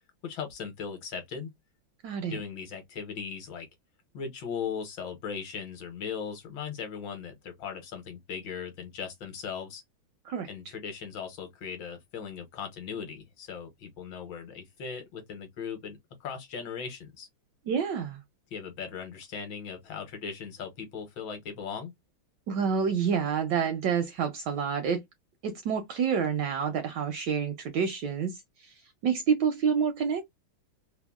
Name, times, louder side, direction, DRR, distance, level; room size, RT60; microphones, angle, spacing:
voice 1, 0.2-1.5 2.3-3.7 4.1-9.8 10.5-17.3 18.5-21.9, left 6 dB, 70° left, 1.5 m, -38 dB
voice 2, 2.0-2.4 10.2-10.5 17.7-18.2 22.5-25.0 25.4-28.8 29.0-30.3, right 6 dB, 75° right, 1.0 m, -28 dB
3.4 x 2.0 x 2.2 m
omnidirectional pair, 2.3 m